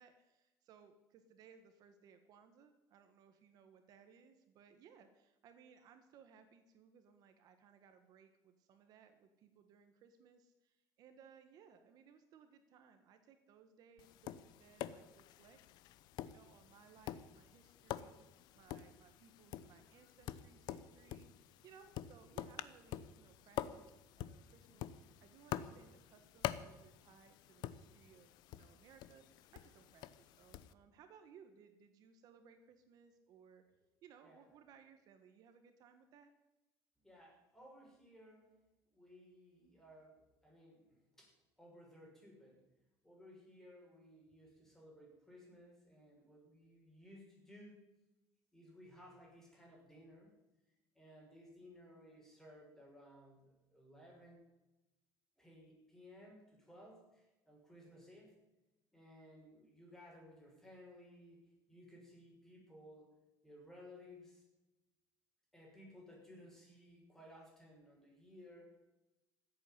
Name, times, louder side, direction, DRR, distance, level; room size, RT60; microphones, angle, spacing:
voice 1, 0.0-15.6 16.2-18.2 18.5-33.6 34.0-36.3, right 7 dB, 60° right, 7 dB, 1.4 m, -63 dB
Tap, 14.0-30.7, left 12 dB, 70° left, 0.8 m, -47 dB
voice 2, 37.0-38.5 38.9-42.7 43.0-47.9 48.5-50.4 50.9-54.4 55.4-58.3 58.9-63.1 63.4-64.4 65.5-68.8, left 1 dB, 5° left, -2 dB, 6.6 m, -59 dB
15.0 x 8.4 x 9.7 m, 1.0 s
cardioid pair, 135°, 7 cm